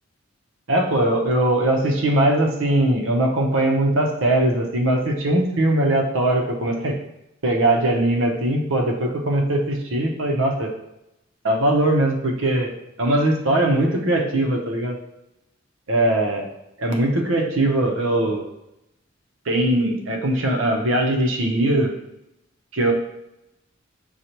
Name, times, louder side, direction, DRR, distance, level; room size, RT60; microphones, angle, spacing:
voice 1, 0.7-6.9 7.4-10.7 11.4-12.7 13.0-15.0 15.9-16.5 16.8-18.5 19.5-22.0 22.7-22.9, right 1 dB, 90° right, 1 dB, 0.8 m, -20 dB
6.5 x 2.3 x 2.9 m, 0.89 s
head